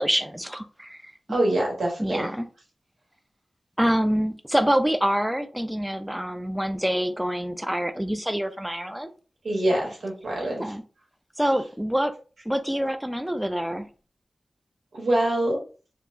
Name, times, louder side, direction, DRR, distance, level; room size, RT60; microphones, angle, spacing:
voice 1, 0.0-1.1 2.0-2.5 3.8-9.1 10.6-10.8 11.4-12.1 12.5-13.9, equal, 5° right, 9 dB, 0.3 m, -26 dB
voice 2, 1.3-2.3 9.4-10.7 14.9-15.6, right 1 dB, 90° right, -1 dB, 1.2 m, -25 dB
4.3 x 2.0 x 2.5 m, 0.37 s
wide cardioid pair, 70°, 0 cm